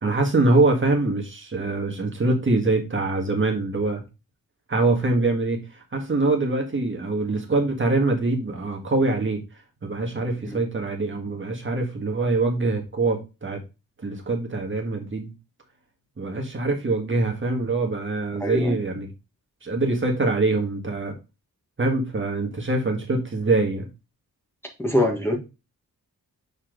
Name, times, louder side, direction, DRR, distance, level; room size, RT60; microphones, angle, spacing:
voice 1, 0.0-4.0 4.7-9.4 9.8-13.6 14.0-15.3 16.2-19.1 19.6-21.2 21.8-23.9, right 2 dB, 35° right, 3 dB, 1.6 m, -24 dB
voice 2, 18.4-18.8 24.8-25.4, left 1 dB, 5° left, 0 dB, 1.4 m, -23 dB
6.8 x 4.4 x 3.8 m, 0.27 s
wide cardioid pair, 165°, 36 cm